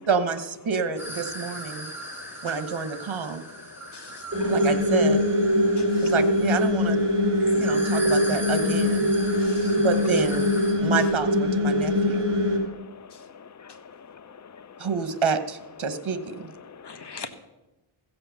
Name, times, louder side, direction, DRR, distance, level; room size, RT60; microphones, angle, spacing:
voice 1, 0.1-1.9 2.4-3.4 4.5-5.2 6.0-7.0 7.5-9.1 9.8-10.4 10.8-12.2 14.8-16.5, right 5 dB, 65° right, 10 dB, 1.3 m, -28 dB
sound 1, 1.0-10.7, equal, 5° right, 4.1 m, -39 dB
voice 2, 3.9-4.2 5.8-6.1 9.4-9.8 13.1-13.2 16.8-17.3, left 5 dB, 55° left, 8 dB, 1.4 m, -42 dB
sound 2, 4.3-12.6, left 1 dB, 25° right, 4.5 m, -22 dB
voice 3, 9.2-9.8 10.7-10.9 11.7-14.9 16.6-17.2, left 6 dB, 35° left, 15 dB, 0.6 m, -47 dB
15.5 x 7.7 x 6.8 m, 0.98 s
wide cardioid pair, 85°, 50 cm